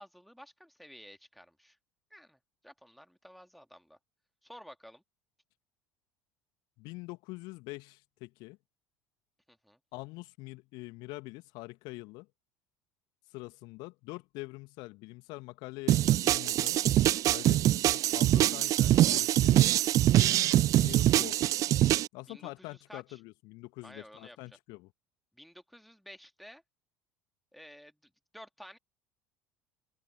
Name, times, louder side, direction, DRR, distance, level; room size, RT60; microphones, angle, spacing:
voice 1, 0.0-1.8 2.1-4.0 4.4-5.0 9.5-9.8 17.8-18.2 22.3-23.2 23.8-24.4 25.3-26.6 27.5-28.8, equal, ahead, 2.5 m, -52 dB
voice 2, 6.8-8.6 9.9-12.3 13.3-19.7 20.8-21.4 22.1-24.9, left 24 dB, 55° left, 1.5 m, -45 dB
sound 1, 15.9-22.1, right 14 dB, 40° right, 0.4 m, -24 dB
open air
figure-of-eight pair, 65°, 9 cm